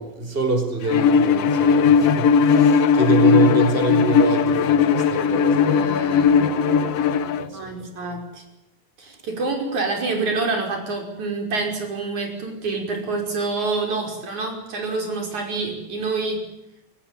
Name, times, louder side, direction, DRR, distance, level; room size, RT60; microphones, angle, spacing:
voice 1, 0.0-7.9, right 4 dB, 15° right, 6 dB, 5.3 m, -26 dB
Bowed string instrument, 0.9-7.5, left 6 dB, 65° left, 1.9 m, -17 dB
voice 2, 7.5-8.4 9.0-16.4, right 3 dB, 80° right, 3 dB, 7.0 m, -27 dB
23.5 x 18.5 x 9.2 m, 0.92 s
omnidirectional pair, 3.3 m